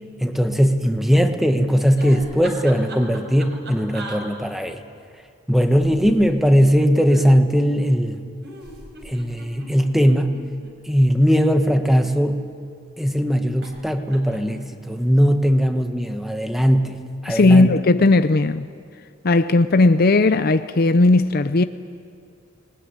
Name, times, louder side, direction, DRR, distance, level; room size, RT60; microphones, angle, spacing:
voice 1, 0.2-4.8 5.5-8.2 9.0-10.4 10.8-12.4 13.0-17.0 17.2-17.7, equal, ahead, 1.3 m, -19 dB
sound 1, 2.0-4.2 5.6-7.2 8.4-10.7 11.6-12.6 13.6-13.8 14.1-14.5, right 1 dB, 55° right, 5.0 m, -39 dB
voice 2, 17.3-18.7 19.2-21.6, left 2 dB, 45° left, 0.6 m, -16 dB
26.5 x 20.5 x 9.9 m
head